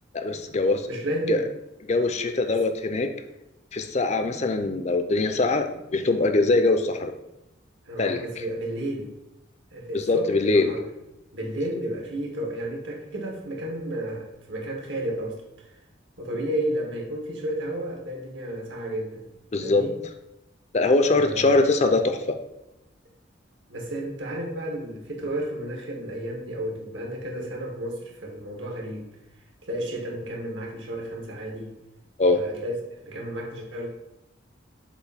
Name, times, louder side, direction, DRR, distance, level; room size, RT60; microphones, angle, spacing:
voice 1, 0.1-0.9 1.3-1.4 1.9-3.1 3.7-7.1 8.0-8.2 9.9-10.7 19.5-19.8 20.7-22.2 32.2-32.4, left 3 dB, 35° left, 7 dB, 0.5 m, -22 dB
voice 2, 0.8-1.5 1.9-2.1 2.5-2.6 7.8-9.1 9.7-10.8 11.3-15.7 16.2-19.3 19.6-20.0 21.1-21.7 23.7-29.1 29.6-31.7 32.3-32.7 33.0-33.9, right 1 dB, 80° right, -1 dB, 1.6 m, -32 dB
6.9 x 2.6 x 5.6 m, 0.91 s
head